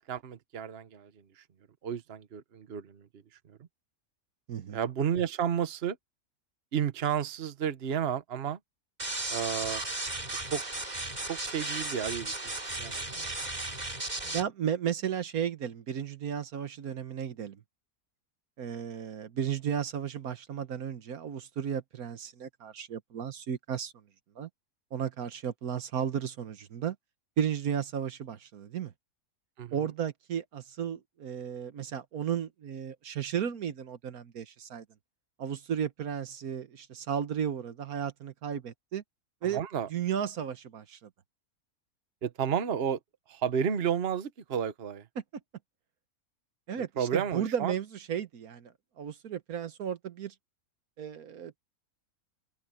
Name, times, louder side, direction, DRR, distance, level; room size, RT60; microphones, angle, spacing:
voice 1, 0.1-1.1 1.4-1.5 1.8-3.1 3.5-3.6 4.7-6.0 6.7-8.6 9.3-9.8 10.5-10.6 11.3-13.3 29.6-29.8 39.4-39.9 42.2-43.0 43.3-45.1 47.0-47.7, right 8 dB, 45° right, 1.2 m, -32 dB
voice 2, 4.5-4.8 14.3-17.6 18.6-23.9 24.4-24.5 24.9-26.9 27.4-28.9 29.7-34.8 35.4-39.0 39.4-39.6 39.9-41.1 46.7-50.3 51.0-51.6, right 8 dB, 75° right, 1.5 m, -34 dB
sound 1, 9.0-14.4, right 2 dB, 30° right, 2.9 m, -35 dB
open air
omnidirectional pair, 1.5 m